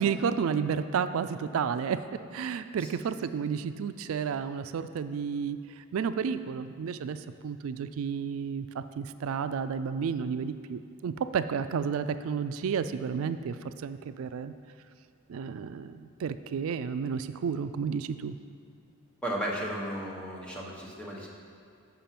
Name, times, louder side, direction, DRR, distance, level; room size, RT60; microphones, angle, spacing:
voice 1, 0.0-2.0 2.3-5.6 5.9-7.2 7.4-14.5 15.3-18.3, right 6 dB, 70° right, 11 dB, 0.3 m, -31 dB
voice 2, 19.2-21.3, right 1 dB, 5° left, -4 dB, 1.0 m, -34 dB
6.9 x 5.3 x 5.9 m, 2.4 s
head